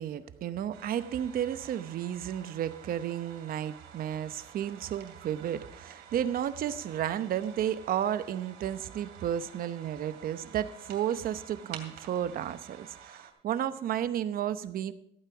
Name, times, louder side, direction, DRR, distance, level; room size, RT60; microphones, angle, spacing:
voice 1, 0.0-14.9, right 10 dB, 60° right, 12 dB, 0.9 m, -32 dB
sound 1, 0.7-13.3, right 8 dB, 75° right, 2.7 m, -50 dB
15.0 x 9.0 x 4.8 m, 0.71 s
cardioid pair, 110°, 17 cm